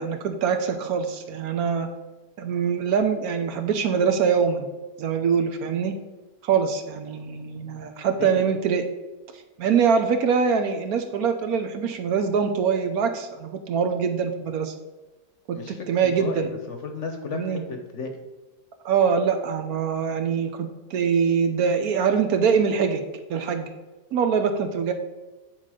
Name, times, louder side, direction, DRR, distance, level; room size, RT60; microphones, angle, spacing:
voice 1, 0.0-1.9 2.4-4.7 5.0-5.9 6.4-8.8 9.6-14.7 15.5-15.6 15.9-16.5 17.3-17.6 18.8-23.0 23.3-23.7 24.1-24.9, right 6 dB, 70° right, 7 dB, 1.1 m, -23 dB
voice 2, 8.2-8.5 15.5-18.2, left 3 dB, 55° left, 5 dB, 1.0 m, -34 dB
9.1 x 4.0 x 4.9 m, 1.1 s
omnidirectional pair, 1.7 m